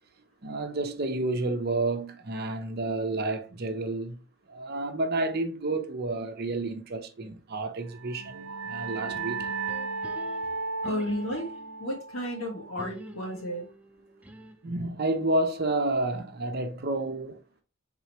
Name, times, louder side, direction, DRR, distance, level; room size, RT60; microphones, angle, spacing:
voice 1, 0.4-4.2 4.5-9.5 14.6-17.4, right 2 dB, 50° right, 0.7 m, -30 dB
sound 1, 7.9-13.2, right 4 dB, 90° right, 0.5 m, -35 dB
sound 2, 9.1-11.9 12.8-14.8, equal, 5° right, 0.4 m, -47 dB
voice 2, 10.8-13.6, equal, 75° left, 1.8 m, -33 dB
4.7 x 3.7 x 3.1 m
head